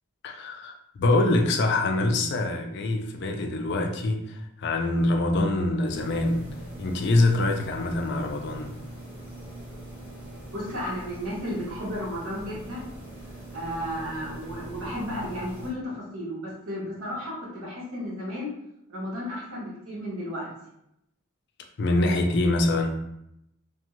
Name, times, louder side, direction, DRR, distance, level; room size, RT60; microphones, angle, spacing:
voice 1, 0.2-6.4 6.8-8.8 21.8-23.0, left 2 dB, 50° left, 4 dB, 0.3 m, -24 dB
sound 1, 5.8-15.7, right 1 dB, 10° right, 0.7 m, -41 dB
voice 2, 10.5-12.9 13.5-18.5 18.9-20.5, equal, 80° right, -6 dB, 1.2 m, -33 dB
2.5 x 2.3 x 2.9 m, 0.80 s
head